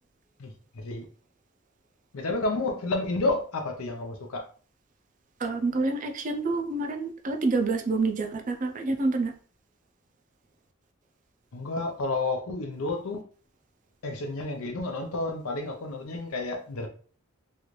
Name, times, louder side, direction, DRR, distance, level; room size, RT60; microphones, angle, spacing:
voice 1, 0.4-1.1 2.1-4.5 11.5-13.2 14.0-16.9, left 2 dB, 75° left, 0.6 m, -30 dB
voice 2, 5.4-9.4, right 3 dB, 35° right, 0.4 m, -27 dB
3.1 x 2.5 x 3.1 m
head